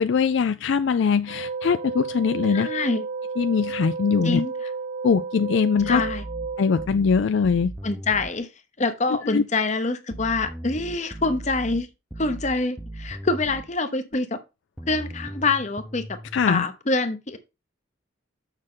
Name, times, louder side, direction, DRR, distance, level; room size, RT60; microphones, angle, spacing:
voice 1, 0.0-2.7 3.4-4.4 5.0-6.0 6.6-7.7 9.3-9.4 16.3-16.6, left 6 dB, 60° left, 0.3 m, -21 dB
sound 1, 1.3-6.9, right 4 dB, 35° right, 0.4 m, -32 dB
voice 2, 2.5-3.0 4.2-4.5 5.9-6.2 7.8-8.5 8.8-11.9 12.2-14.4 14.9-16.2 16.5-17.4, left 3 dB, 35° left, 0.8 m, -25 dB
sound 2, 5.8-8.4 10.1-13.7 14.8-16.4, right 1 dB, 5° right, 0.7 m, -38 dB
6.5 x 6.3 x 3.8 m
head